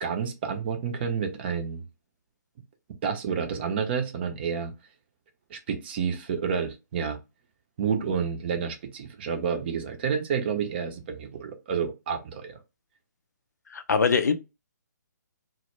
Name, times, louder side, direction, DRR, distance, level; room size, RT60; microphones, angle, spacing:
voice 1, 0.0-1.8 3.0-4.7 5.5-7.2 7.8-12.6, right 6 dB, 35° right, 0.5 m, -29 dB
voice 2, 13.7-14.3, left 5 dB, 65° left, 0.5 m, -22 dB
2.1 x 2.0 x 3.0 m
figure-of-eight pair, 135°, 10 cm